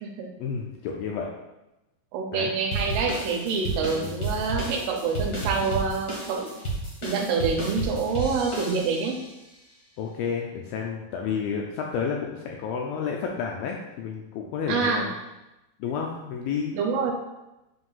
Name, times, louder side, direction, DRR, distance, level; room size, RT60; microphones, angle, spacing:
voice 1, 0.4-1.3 2.3-2.5 3.9-4.2 10.0-15.1 15.8-16.7, left 6 dB, 80° left, 0 dB, 2.1 m, -31 dB
voice 2, 2.1-6.5 7.0-9.2 14.7-15.1 16.7-17.1, right 5 dB, 80° right, 1 dB, 2.7 m, -26 dB
sound 1, 2.7-9.2, right 2 dB, 60° left, 1.0 m, -32 dB
7.9 x 2.6 x 5.6 m, 0.98 s
omnidirectional pair, 4.7 m